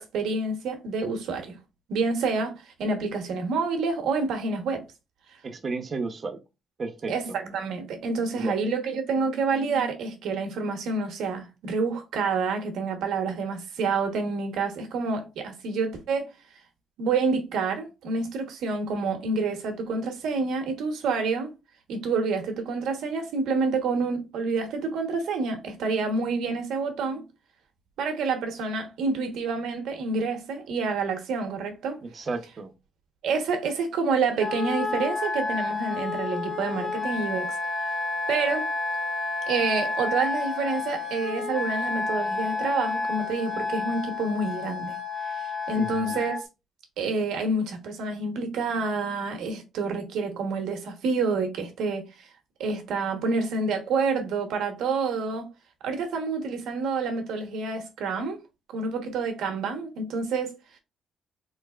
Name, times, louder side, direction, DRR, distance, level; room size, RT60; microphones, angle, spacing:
voice 1, 0.0-1.6 1.9-4.8 7.1-16.3 17.0-21.5 21.9-27.2 28.0-32.0 33.2-37.5 37.8-37.9 38.3-38.7 39.5-45.0 45.3-46.4 47.0-52.0 52.6-55.5 55.8-58.4 58.7-60.6, right 4 dB, 80° right, 1.0 m, -28 dB
voice 2, 5.4-6.4 6.8-7.4 8.3-8.6 32.0-32.7 45.7-46.2, right 3 dB, 40° right, 0.7 m, -33 dB
Wind instrument woodwind instrument, 34.4-46.4, left 3 dB, 20° left, 1.4 m, -30 dB
4.0 x 3.2 x 2.3 m
cardioid pair, 90°, 0 cm